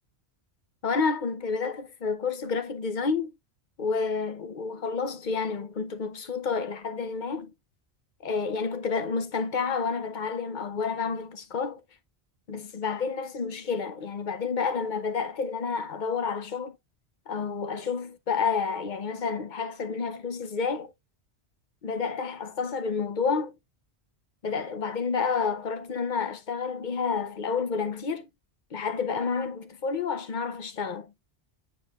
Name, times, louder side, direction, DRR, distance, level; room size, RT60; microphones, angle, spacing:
voice 1, 0.8-3.3 3.8-7.5 8.2-11.8 12.5-16.8 17.3-20.9 21.8-23.6 24.4-28.3 28.7-31.1, left 5 dB, 50° left, 0.8 m, -30 dB
8.8 x 4.7 x 2.4 m
omnidirectional pair, 1.1 m